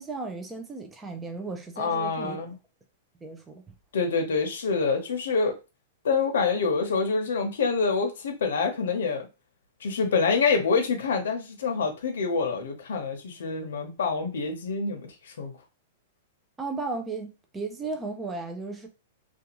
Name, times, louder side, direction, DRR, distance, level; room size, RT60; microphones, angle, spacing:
voice 1, 0.0-2.4 3.2-3.7 16.6-18.9, right 3 dB, 10° right, 0.4 m, -35 dB
voice 2, 1.8-2.5 3.9-5.5 6.0-9.3 9.8-15.5, left 4 dB, 80° left, 0.7 m, -26 dB
2.5 x 2.3 x 2.9 m
supercardioid pair, 175°, 0 cm